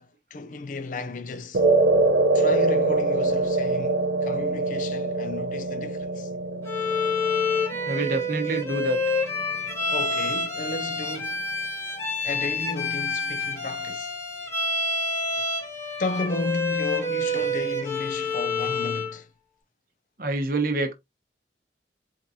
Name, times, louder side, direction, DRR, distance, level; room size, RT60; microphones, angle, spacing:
voice 1, 0.0-1.6 2.3-6.3 9.9-11.4 12.2-14.1 15.3-15.4 16.0-19.3, left 2 dB, 45° left, 0.4 m, -33 dB
sound 1, 1.5-10.0, right 2 dB, 80° right, 0.6 m, -24 dB
Bowed string instrument, 6.7-19.2, left 2 dB, 15° left, 1.3 m, -28 dB
voice 2, 7.9-9.0 20.2-20.9, right 2 dB, 50° right, 0.9 m, -26 dB
4.6 x 3.7 x 2.7 m
head